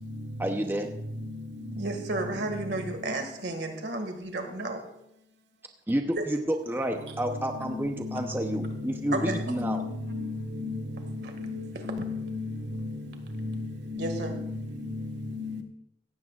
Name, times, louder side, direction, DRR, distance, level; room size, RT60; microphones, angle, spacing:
voice 1, 0.4-0.9 5.9-9.8, right 1 dB, 10° right, 0.7 m, -30 dB
voice 2, 1.8-4.9 6.1-6.2 9.1-9.4 11.2-11.3 14.0-14.3, right 2 dB, 65° right, 2.0 m, -32 dB
voice 3, 11.9-12.4 13.5-13.6 13.9-14.0 15.4-15.6, left 4 dB, 85° right, 1.5 m, -33 dB
17.0 x 14.5 x 2.5 m
head